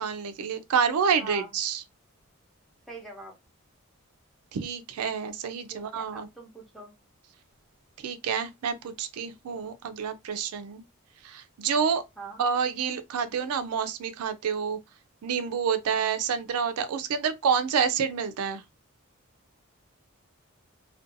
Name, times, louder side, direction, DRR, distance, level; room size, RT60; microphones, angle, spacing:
voice 1, 0.0-1.8 4.5-6.3 8.0-10.8 11.2-12.0 12.4-14.8 15.2-18.6, right 6 dB, 85° right, 0.4 m, -28 dB
voice 2, 1.1-1.5 2.9-3.3 5.7-6.9 12.2-12.4, right 3 dB, ahead, 0.6 m, -43 dB
2.5 x 2.2 x 2.5 m
head